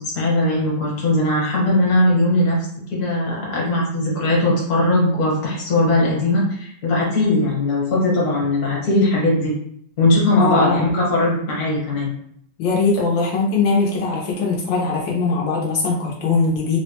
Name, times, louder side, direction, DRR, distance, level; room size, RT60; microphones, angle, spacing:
voice 1, 0.1-2.6 2.9-9.5 10.0-12.1, left 1 dB, 55° left, -4 dB, 1.6 m, -19 dB
voice 2, 10.4-10.8 12.6-16.8, left 4 dB, 85° left, -2 dB, 1.4 m, -20 dB
3.7 x 2.1 x 2.8 m, 0.68 s
omnidirectional pair, 2.0 m